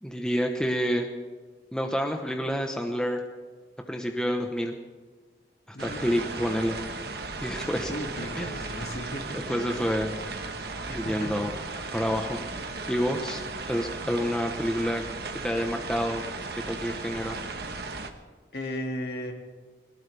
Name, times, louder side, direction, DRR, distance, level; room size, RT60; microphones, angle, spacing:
voice 1, 0.0-1.1 1.7-3.2 3.9-4.7 5.7-6.8 7.4-7.9 8.3-8.9 9.3-10.1 10.9-11.5 11.9-12.4 12.9-13.4 13.7-15.0 15.4-16.2 16.7-17.4, equal, 5° left, 3 dB, 1.0 m, -28 dB
voice 2, 5.7-6.0 7.9-9.7 10.9-11.3 18.5-19.3, equal, 60° left, 2 dB, 2.5 m, -36 dB
sound 1, 5.8-18.1, right 3 dB, 60° right, 1.3 m, -36 dB
21.5 x 19.0 x 3.5 m, 1.4 s
head